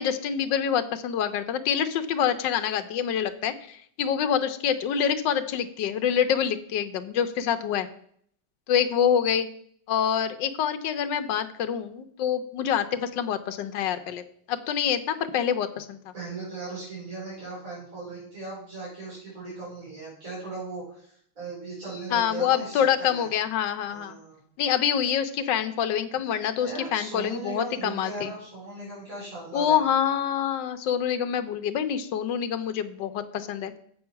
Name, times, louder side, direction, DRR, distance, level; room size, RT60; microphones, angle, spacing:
voice 1, 0.0-7.9 8.7-9.5 9.9-14.2 14.5-16.1 22.1-24.2 24.6-28.3 29.5-33.8, left 8 dB, 75° left, 9 dB, 1.4 m, -26 dB
voice 2, 16.1-23.3 23.9-24.4 26.6-29.8, right 3 dB, 45° right, -8 dB, 5.1 m, -38 dB
7.9 x 6.5 x 5.8 m, 0.64 s
omnidirectional pair, 2.0 m